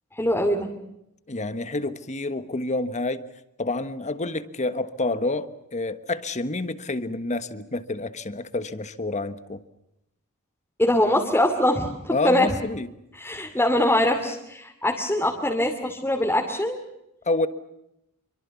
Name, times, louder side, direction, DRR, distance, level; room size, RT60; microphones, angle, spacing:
voice 1, 0.1-0.7 10.8-12.5 13.2-16.8, left 1 dB, 10° left, 1 dB, 2.7 m, -23 dB
voice 2, 1.3-3.2 3.6-9.6 12.1-12.9 17.2-17.5, left 2 dB, 35° left, 12 dB, 1.4 m, -28 dB
27.5 x 24.5 x 7.1 m, 0.86 s
head